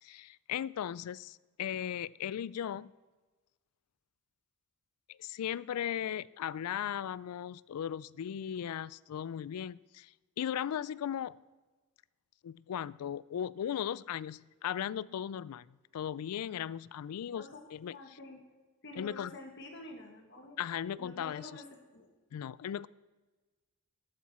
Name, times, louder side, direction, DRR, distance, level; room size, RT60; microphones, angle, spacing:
voice 1, 0.0-2.9 5.1-10.1 10.4-11.3 12.4-15.7 15.9-18.0 19.0-19.3 20.6-21.6 22.3-22.9, left 9 dB, 85° left, 22 dB, 0.3 m, -37 dB
voice 2, 17.9-18.4 18.8-20.6 21.0-22.1, left 2 dB, 55° left, 3 dB, 1.7 m, -48 dB
13.0 x 11.0 x 4.3 m, 1.2 s
head